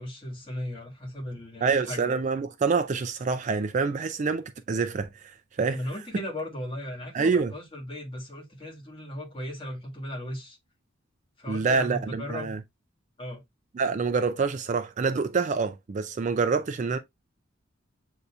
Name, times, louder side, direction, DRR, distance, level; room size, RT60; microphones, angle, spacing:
voice 1, 0.0-2.2 5.7-10.6 11.4-12.5 13.2-13.4 16.8-16.9, left 1 dB, 25° left, 1.6 m, -37 dB
voice 2, 1.6-5.8 7.1-7.5 11.5-12.6 13.8-17.0, right 4 dB, 35° right, 0.3 m, -26 dB
7.9 x 2.7 x 2.3 m
head